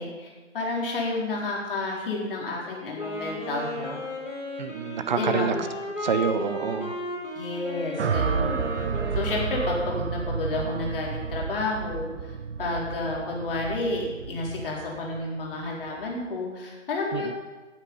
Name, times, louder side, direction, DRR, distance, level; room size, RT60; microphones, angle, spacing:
voice 1, 0.0-4.0 5.2-5.6 7.3-8.7 9.1-12.1 12.6-17.3, left 2 dB, 45° left, -3 dB, 4.3 m, -30 dB
Wind instrument woodwind instrument, 2.9-10.0, left 1 dB, 90° left, 5.5 m, -35 dB
voice 2, 4.6-5.5 6.0-6.9 17.1-17.3, right 7 dB, 35° right, 10 dB, 1.0 m, -27 dB
sound 1, 8.0-16.2, right 6 dB, 60° right, 0.7 m, -31 dB
18.5 x 8.9 x 5.5 m, 1.3 s
figure-of-eight pair, 135°, 39 cm